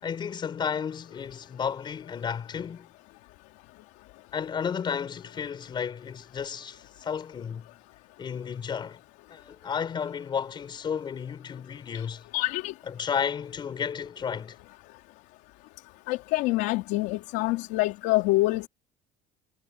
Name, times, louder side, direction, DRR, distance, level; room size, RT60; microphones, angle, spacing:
voice 1, 0.0-2.9 4.3-7.7 8.2-9.0 9.3-12.2 12.9-14.6, left 7 dB, 25° left, 4.7 m, -32 dB
voice 2, 12.3-12.7 16.1-18.7, left 20 dB, 80° left, 3.2 m, -26 dB
cardioid pair, 165°, 17 cm